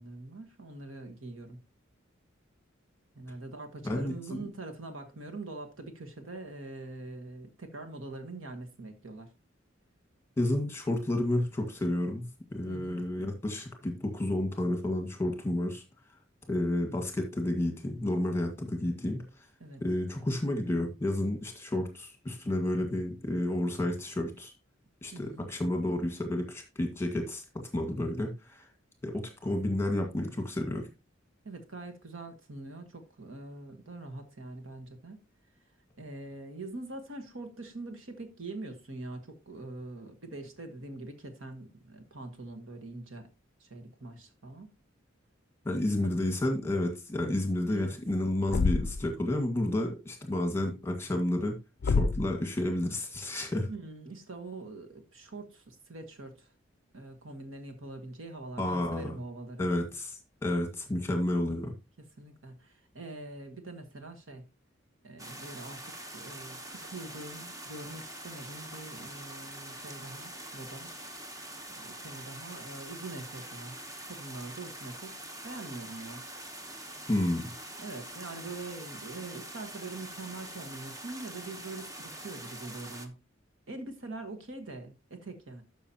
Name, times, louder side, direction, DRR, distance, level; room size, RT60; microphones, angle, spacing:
voice 1, 0.0-1.6 3.1-9.3 12.7-13.0 19.6-19.8 25.1-25.5 31.4-35.2 36.0-43.3 43.6-44.7 46.0-46.1 47.7-47.9 53.7-56.5 56.9-59.7 62.2-64.4 65.0-70.9 71.7-73.8 74.1-75.2 75.4-76.2 77.8-83.1 83.7-85.6, right 2 dB, 80° right, 1.5 m, -43 dB
voice 2, 3.8-4.5 10.4-15.8 16.5-19.2 19.8-24.5 25.0-28.6 29.0-30.9 45.6-51.5 51.8-53.7 58.6-59.2 59.6-61.7 77.1-77.5, left 1 dB, 15° left, 1.7 m, -31 dB
Thump thud, 48.5-49.1 51.8-52.4, left 4 dB, 55° left, 0.4 m, -27 dB
sound 1, 65.2-83.1, right 1 dB, 15° right, 1.0 m, -44 dB
12.5 x 6.1 x 2.9 m
head